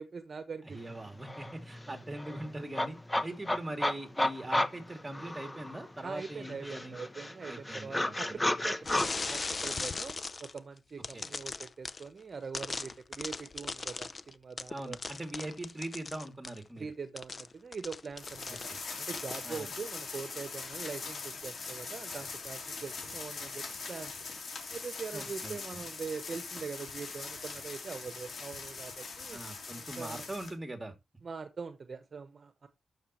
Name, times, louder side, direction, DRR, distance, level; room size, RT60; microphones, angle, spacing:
voice 1, 0.0-0.8 6.0-10.1 10.4-15.0 16.8-18.7 19.0-24.1 24.7-29.4 29.8-30.3 31.2-32.7, right 5 dB, 55° right, 1.1 m, -43 dB
voice 2, 0.6-7.0 7.5-8.5 11.1-11.2 14.7-16.8 18.7-18.8 19.4-19.7 25.1-25.8 29.3-30.9, right 1 dB, 20° right, 2.9 m, -41 dB
sound 1, 0.9-1.0 1.2-5.9 6.2-9.1, left 1 dB, 15° left, 1.0 m, -33 dB
sound 2, 8.9-10.6 11.0-12.1 12.5-16.6 17.2-18.9 19.2-19.4, left 3 dB, 45° left, 0.6 m, -38 dB
sound 3, 18.2-30.5, left 4 dB, 70° left, 3.5 m, -42 dB
12.0 x 6.8 x 3.2 m
cardioid pair, 75°, 0 cm